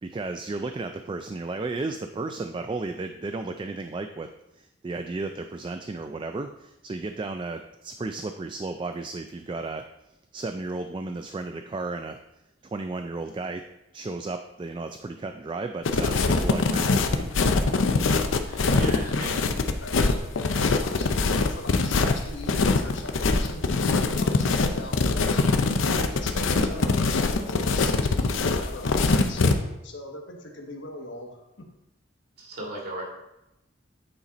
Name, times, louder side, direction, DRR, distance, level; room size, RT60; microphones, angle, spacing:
voice 1, 0.0-4.3 4.5-9.8 10.3-12.2 12.6-13.6 13.9-17.3, right 3 dB, 25° right, 7 dB, 0.3 m, -34 dB
sound 1, 15.8-29.5, left 3 dB, 85° left, 0.6 m, -23 dB
voice 2, 18.4-19.4 32.4-33.1, right 1 dB, 55° right, -3 dB, 2.2 m, -36 dB
voice 3, 19.0-19.5 19.8-25.4 25.9-29.4 29.8-31.3 31.6-31.7, left 2 dB, 65° left, 2 dB, 1.2 m, -40 dB
8.7 x 4.1 x 4.1 m, 0.88 s
head